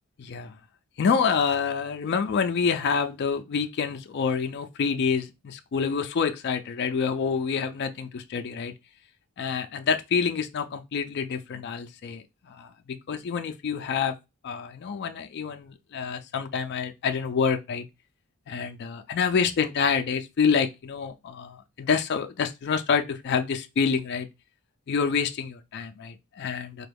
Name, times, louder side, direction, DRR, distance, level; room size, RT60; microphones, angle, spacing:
voice 1, 0.2-0.6 1.0-8.7 9.4-14.2 14.4-17.9 18.5-24.3 24.9-26.9, left 6 dB, 50° left, 0.4 m, -27 dB
4.1 x 2.3 x 3.3 m
head